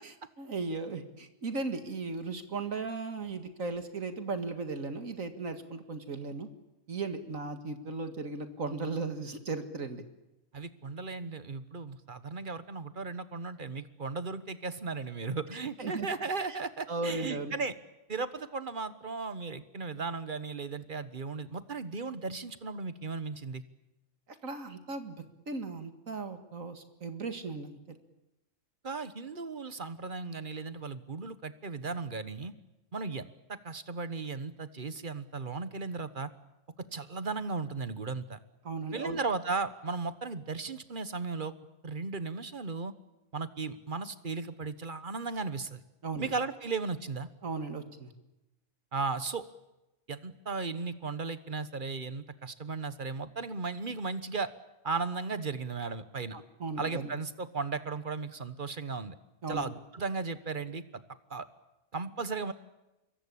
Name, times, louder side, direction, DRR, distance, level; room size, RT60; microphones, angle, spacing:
voice 1, 0.0-6.5 6.9-10.0 15.8-16.1 16.9-17.5 24.4-25.2 25.5-28.0 38.6-39.2 46.0-46.3 47.4-48.1 56.3-57.1 59.4-59.7, right 3 dB, 70° right, 8 dB, 2.3 m, -36 dB
voice 2, 10.5-17.7 18.1-23.6 28.8-32.5 32.9-36.3 36.8-38.4 38.9-41.5 41.8-42.9 43.3-45.8 46.2-47.3 48.9-49.5 50.1-54.5 54.8-56.4 56.8-59.2 59.5-61.0 61.3-61.5 61.9-62.5, right 4 dB, 40° right, 13 dB, 1.3 m, -36 dB
26.0 x 22.5 x 8.6 m, 0.98 s
omnidirectional pair, 1.4 m